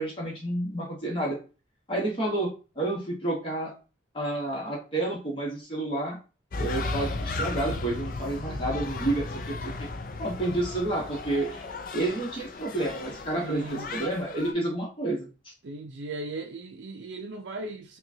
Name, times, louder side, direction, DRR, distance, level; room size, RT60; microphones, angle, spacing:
voice 1, 0.0-1.4 1.9-2.5 2.7-3.7 4.1-6.2 6.6-9.9 10.2-11.7 11.9-15.5, right 2 dB, 30° left, 1.2 m, -30 dB
sound 1, 6.5-14.5, left 3 dB, 45° left, 0.4 m, -35 dB
voice 2, 13.4-13.9 15.6-18.0, right 2 dB, 70° right, 0.5 m, -38 dB
5.5 x 2.3 x 2.7 m
head